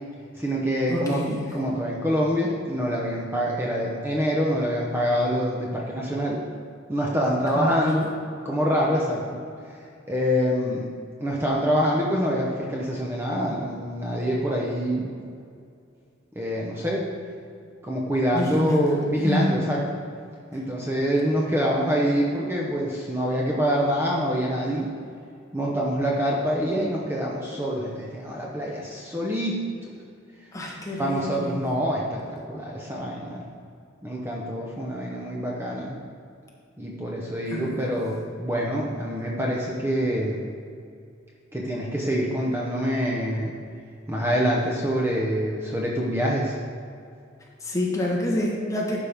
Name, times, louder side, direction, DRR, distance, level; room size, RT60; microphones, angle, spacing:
voice 1, 0.4-1.2 1.5-6.4 6.9-8.1 8.4-9.4 10.1-10.8 11.2-15.1 16.4-17.1 17.8-19.8 20.5-24.9 25.5-29.6 31.0-33.4 34.0-36.0 36.8-40.5 41.5-43.5 44.1-46.6, equal, 15° right, -3 dB, 0.7 m, -25 dB
voice 2, 0.9-1.4 7.5-7.9 18.3-19.0 19.2-19.5 30.5-31.6 37.5-37.8 47.6-49.0, left 1 dB, 15° left, -2 dB, 1.2 m, -28 dB
11.5 x 5.4 x 3.5 m, 2.4 s
head